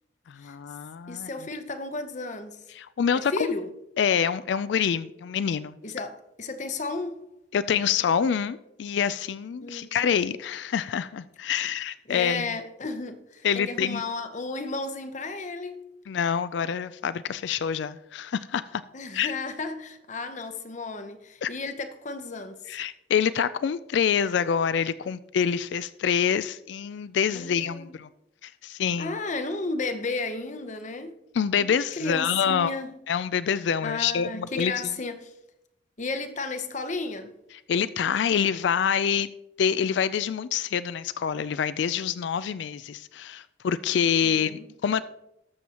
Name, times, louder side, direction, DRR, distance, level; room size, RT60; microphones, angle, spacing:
voice 1, 0.3-1.3 2.8-3.5 4.0-5.8 7.5-12.5 13.4-14.0 16.1-18.8 19.1-19.3 21.4-21.5 22.7-28.1 28.4-29.1 31.4-32.7 33.1-34.9 37.7-39.3 39.6-45.0, left 7 dB, 65° left, 0.3 m, -26 dB
voice 2, 1.1-2.7 3.1-3.7 5.8-7.3 9.6-9.9 12.1-15.9 18.9-22.8 27.3-28.0 29.0-31.2 31.5-32.9 33.8-35.3 36.0-37.4 44.2-44.7, left 3 dB, 40° left, 0.8 m, -33 dB
19.0 x 7.1 x 2.9 m
head